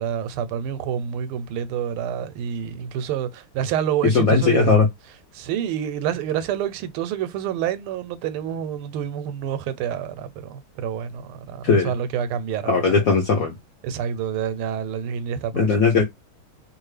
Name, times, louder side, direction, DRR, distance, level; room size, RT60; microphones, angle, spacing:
voice 1, 0.0-4.8 5.3-13.0 13.8-15.9, right 9 dB, 90° right, 1.5 m, -28 dB
voice 2, 4.0-4.8 11.6-11.9 12.7-13.6 15.5-16.0, left 4 dB, 65° left, 0.8 m, -18 dB
3.2 x 2.4 x 3.2 m
omnidirectional pair, 2.3 m